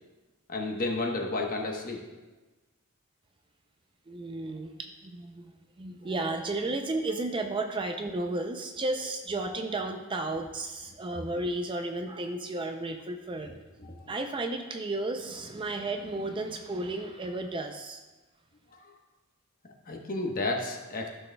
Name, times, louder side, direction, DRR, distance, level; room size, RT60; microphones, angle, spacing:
voice 1, 0.5-2.0 13.5-14.1 18.7-18.9 19.9-21.1, left 2 dB, 40° left, 1 dB, 1.1 m, -32 dB
voice 2, 4.1-13.5 14.1-18.0, right 2 dB, 20° right, 5 dB, 0.4 m, -33 dB
14.0 x 6.3 x 2.3 m, 1.2 s
head